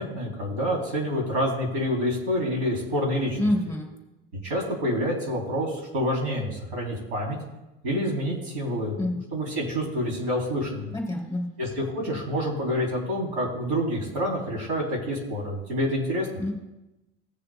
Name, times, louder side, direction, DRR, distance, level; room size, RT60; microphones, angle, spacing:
voice 1, 0.0-3.4 4.4-7.4 7.8-9.0 9.3-10.9 11.6-16.3, equal, 80° right, -2 dB, 3.4 m, -27 dB
voice 2, 3.4-3.9 9.0-9.2 10.9-11.4 16.4-16.5, left 1 dB, 10° left, 0 dB, 2.9 m, -27 dB
18.5 x 6.8 x 2.3 m, 0.98 s
hypercardioid pair, 80°, 31 cm